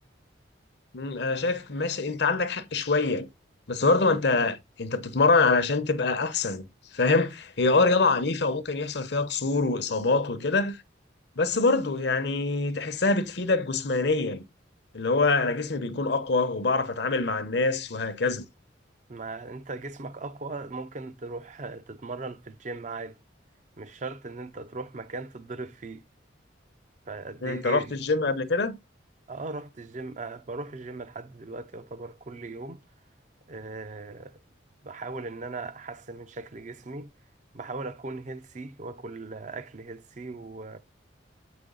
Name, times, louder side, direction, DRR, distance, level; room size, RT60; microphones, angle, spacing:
voice 1, 0.9-3.3 3.7-6.7 6.9-10.8 11.4-14.4 14.9-18.4 27.4-28.7, left 3 dB, 60° left, 0.8 m, -25 dB
voice 2, 19.1-23.2 23.8-26.0 27.1-28.0 29.3-32.8 33.5-34.4 34.8-37.1 37.5-40.8, right 3 dB, 40° right, 0.5 m, -38 dB
7.8 x 5.1 x 3.8 m
head